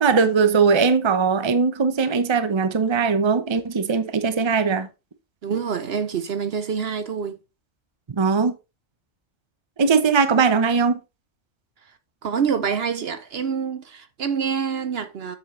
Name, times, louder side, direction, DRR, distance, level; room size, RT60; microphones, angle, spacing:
voice 1, 0.0-4.9 8.1-8.6 9.8-11.0, right 5 dB, 30° right, 0.7 m, -20 dB
voice 2, 5.4-7.4 12.2-15.4, right 6 dB, 60° right, 0.9 m, -26 dB
7.8 x 7.2 x 3.2 m
omnidirectional pair, 1.2 m